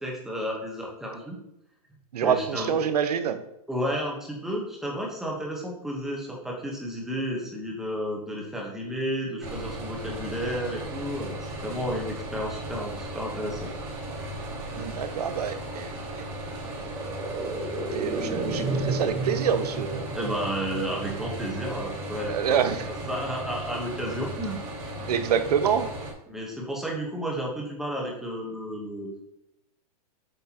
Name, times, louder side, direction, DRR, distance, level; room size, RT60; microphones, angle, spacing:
voice 1, 0.0-1.4 2.2-2.8 3.7-13.7 20.1-22.6 23.1-24.6 26.3-29.1, equal, ahead, -2 dB, 1.1 m, -32 dB
voice 2, 2.1-3.4 14.7-15.9 17.9-20.1 22.3-22.9 25.1-25.9, right 8 dB, 85° right, 10 dB, 0.9 m, -26 dB
sound 1, 9.4-26.1, right 1 dB, 45° right, 2.5 m, -36 dB
sound 2, 14.0-23.6 23.9-24.0, right 2 dB, 20° right, 1.4 m, -35 dB
8.2 x 5.7 x 2.9 m, 0.83 s
supercardioid pair, 175°, 20 cm